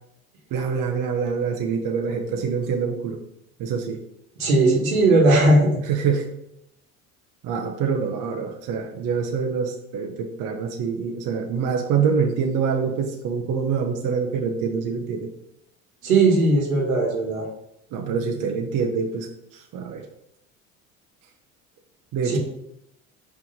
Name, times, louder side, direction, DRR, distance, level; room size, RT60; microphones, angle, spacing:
voice 1, 0.5-3.2 3.6-4.0 5.9-6.3 7.4-15.3 17.9-20.0 22.1-22.4, right 6 dB, 50° right, 2 dB, 1.0 m, -25 dB
voice 2, 4.4-5.8 16.0-17.5 22.2-22.4, right 2 dB, 90° right, -1 dB, 1.7 m, -18 dB
5.6 x 3.6 x 5.4 m, 0.79 s
hypercardioid pair, 75°, 41 cm